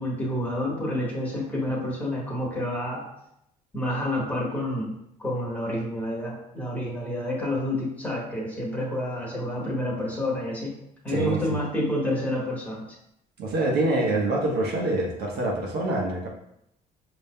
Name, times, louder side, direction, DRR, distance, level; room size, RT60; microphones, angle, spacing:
voice 1, 0.0-3.0 3.7-10.7 11.0-12.8, left 1 dB, 10° left, -5 dB, 1.3 m, -29 dB
voice 2, 11.1-11.4 13.4-16.3, right 2 dB, 70° right, -2 dB, 1.0 m, -25 dB
5.2 x 3.0 x 2.2 m, 0.77 s
cardioid pair, 110°, 17 cm